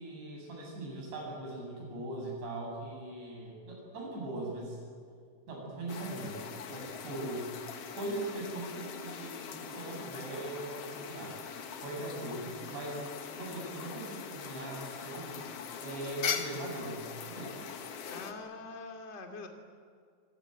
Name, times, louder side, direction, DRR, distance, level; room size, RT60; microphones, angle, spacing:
voice 1, 0.0-4.8 5.5-7.5 7.9-11.4 11.8-13.0 13.3-15.4 15.8-17.7, right 2 dB, 75° right, -1 dB, 10.0 m, -40 dB
sound 1, 5.9-18.3, left 7 dB, 70° left, 1.4 m, -41 dB
voice 2, 18.1-19.5, left 3 dB, 20° left, 3 dB, 2.1 m, -44 dB
26.0 x 22.0 x 9.1 m, 2.1 s
omnidirectional pair, 5.0 m